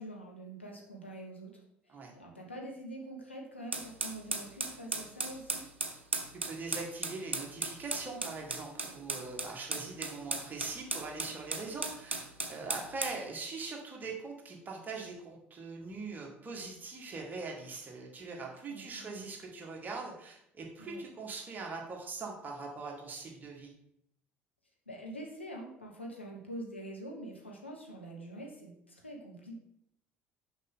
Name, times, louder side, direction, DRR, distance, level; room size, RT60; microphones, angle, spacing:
voice 1, 0.0-5.7 18.7-19.3 20.8-21.0 24.9-29.6, right 1 dB, 90° left, -1 dB, 1.1 m, -45 dB
sound 1, 3.7-13.2, right 3 dB, 85° right, 0.5 m, -36 dB
voice 2, 6.4-23.7, right 3 dB, 30° right, 0 dB, 1.7 m, -42 dB
6.3 x 5.6 x 3.6 m, 0.76 s
figure-of-eight pair, 60°, 6 cm